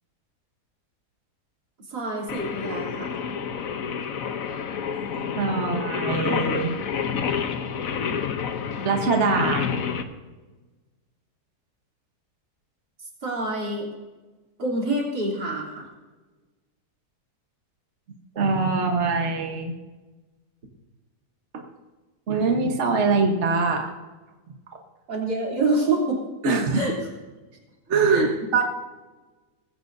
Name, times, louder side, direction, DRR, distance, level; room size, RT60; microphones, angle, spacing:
voice 1, 1.9-3.2 13.2-13.9 14.6-15.9 25.1-26.2 26.7-26.9 28.1-28.3, right 2 dB, 80° right, -3 dB, 3.9 m, -26 dB
Singing, 2.3-10.0, left 7 dB, 60° left, 1.3 m, -29 dB
voice 2, 5.4-6.8 8.8-9.7 18.3-19.7 21.5-21.6 22.3-23.9 26.4-26.9 27.9-28.6, right 4 dB, 45° right, 2 dB, 1.5 m, -23 dB
20.0 x 16.0 x 2.7 m, 1.2 s
omnidirectional pair, 1.7 m